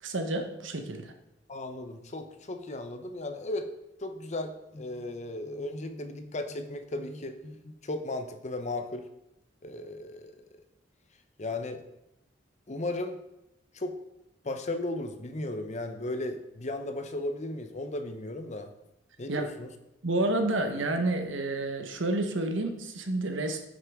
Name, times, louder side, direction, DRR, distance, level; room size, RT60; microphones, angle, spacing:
voice 1, 0.0-1.1 19.3-19.5 20.0-23.7, right 2 dB, 80° right, 6 dB, 1.1 m, -29 dB
voice 2, 1.5-3.7 4.0-9.0 9.6-10.6 11.4-11.8 12.7-13.2 13.7-13.9 14.4-18.7 19.2-19.7, left 2 dB, 40° left, 8 dB, 0.7 m, -35 dB
9.2 x 6.5 x 3.6 m, 0.89 s
head